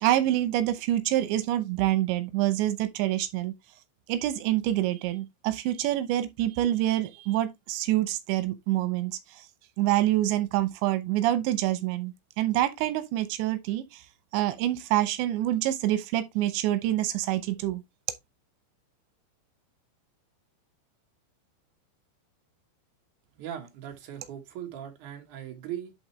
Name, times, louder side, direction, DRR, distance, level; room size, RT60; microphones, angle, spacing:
voice 1, 0.0-3.5 4.1-9.4 9.8-14.0 14.3-17.8, right 14 dB, 90° right, 3.1 m, -26 dB
voice 2, 23.4-25.9, right 10 dB, 60° right, 2.2 m, -39 dB
11.0 x 3.9 x 3.1 m
omnidirectional pair, 5.0 m